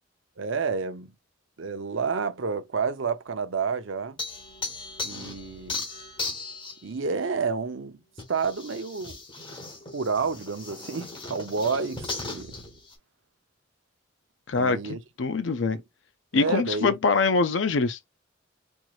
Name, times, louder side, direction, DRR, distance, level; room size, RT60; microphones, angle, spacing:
voice 1, 0.4-1.1 1.6-4.2 5.0-5.9 6.8-8.0 8.3-9.2 9.9-12.5 14.5-15.0 15.7-15.8 16.3-16.9, right 5 dB, 80° right, 0.7 m, -29 dB
sound 1, 4.2-6.9 8.2-12.9, left 3 dB, 25° left, 1.3 m, -37 dB
voice 2, 14.5-15.8 16.3-18.0, left 4 dB, 70° left, 0.5 m, -24 dB
4.4 x 3.0 x 2.3 m
head